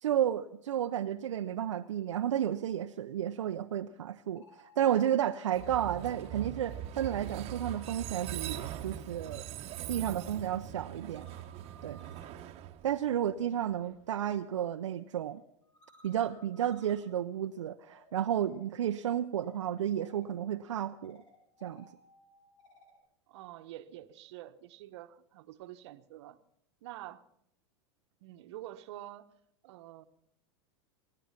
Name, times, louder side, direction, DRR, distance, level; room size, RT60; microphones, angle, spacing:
voice 1, 0.0-9.4 9.9-11.3 11.8-12.0 12.8-15.4 16.0-21.2 21.6-21.8, right 10 dB, 85° right, 6 dB, 0.6 m, -32 dB
sound 1, 4.2-9.4 9.7-23.0, left 1 dB, 80° left, 7.2 m, -62 dB
Train, 5.5-13.5, right 12 dB, 40° right, 1.1 m, -41 dB
voice 2, 23.3-26.4 26.8-27.2 28.2-29.3 29.6-30.0, right 14 dB, 65° right, 11 dB, 1.1 m, -47 dB
24.0 x 10.0 x 5.8 m, 0.73 s
hypercardioid pair, 105°, 15 cm